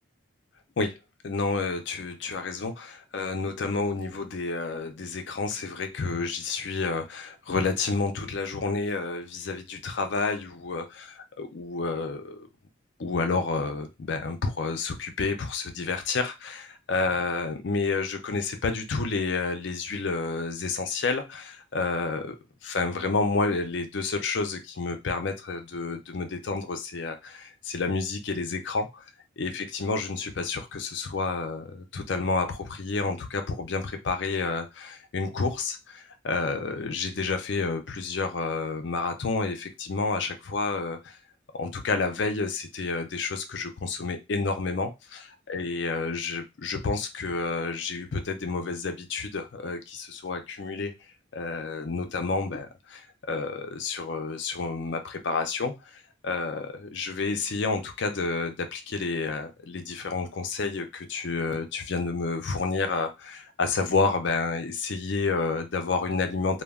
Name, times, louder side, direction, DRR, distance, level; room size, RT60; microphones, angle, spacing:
voice 1, 1.2-12.5 13.0-22.4 22.6-29.1 29.4-41.2 41.5-45.2 45.5-50.9 51.3-66.6, left 4 dB, 55° left, 6 dB, 0.5 m, -30 dB
2.2 x 2.2 x 3.4 m, 0.24 s
head